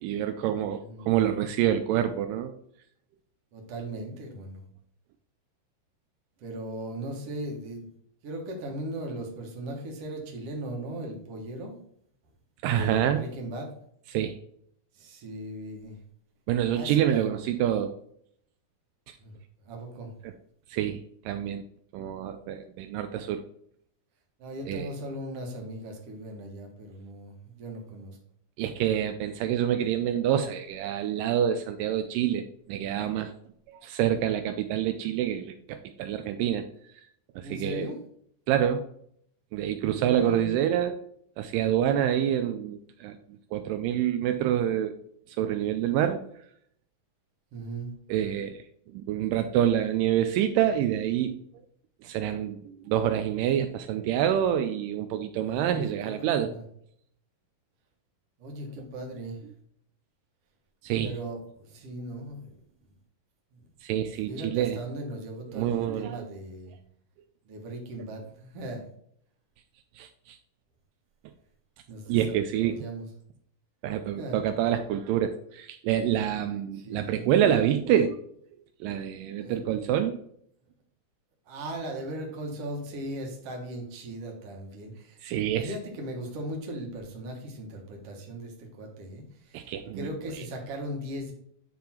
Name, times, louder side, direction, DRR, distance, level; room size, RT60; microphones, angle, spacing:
voice 1, 0.0-2.5 12.6-13.3 14.1-14.4 16.5-17.9 19.1-19.2 20.2-20.3 20.7-21.0 21.3-21.6 21.9-23.4 24.7-24.9 28.6-33.3 33.7-36.7 37.4-37.8 38.5-38.8 39.5-41.0 41.4-43.2 43.5-44.9 45.3-46.2 48.1-48.6 48.9-51.4 52.0-56.5 60.8-61.1 63.8-64.8 65.5-66.2 70.0-70.4 72.1-72.8 73.8-78.2 78.8-80.2 85.2-85.8 89.5-90.1, right 10 dB, 85° right, 7 dB, 2.1 m, -27 dB
voice 2, 0.8-1.1 3.5-4.6 6.4-7.9 8.2-11.7 12.6-13.7 15.0-16.0 16.7-17.3 19.2-19.3 19.7-20.1 24.4-28.2 37.4-38.0 40.0-40.6 47.5-47.9 55.4-56.6 58.4-59.4 61.0-62.6 64.3-66.7 67.5-68.9 71.9-73.1 74.2-74.4 76.7-77.3 79.4-79.6 81.5-85.2 85.6-91.3, right 1 dB, 55° right, 1 dB, 2.1 m, -38 dB
9.5 x 3.5 x 4.4 m, 0.66 s
omnidirectional pair, 3.9 m